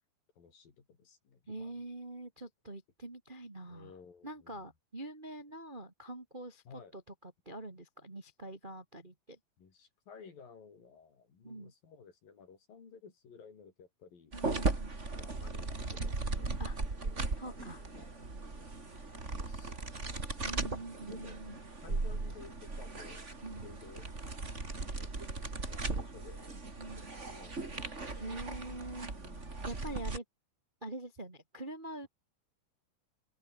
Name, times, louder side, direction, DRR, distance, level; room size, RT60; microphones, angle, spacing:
voice 1, 0.4-1.8 3.7-4.7 6.7-6.9 9.6-14.4 15.1-16.7 16.9-17.2 17.4-21.4 21.8-23.2 23.5-24.1 25.0-25.1 25.4-26.6 26.9-28.4 28.7-29.7, left 6 dB, 45° left, 5.6 m, -56 dB
voice 2, 1.5-3.9 4.2-6.6 6.9-9.4 11.4-11.7 14.3-14.9 16.6-16.8 17.4-17.8 20.4-21.6 23.4-23.7 26.8-27.0 28.2-29.1 29.6-30.2 30.8-32.1, right 1 dB, 75° right, 0.4 m, -44 dB
sound 1, 14.3-30.2, right 3 dB, 20° right, 2.2 m, -38 dB
open air
omnidirectional pair, 5.9 m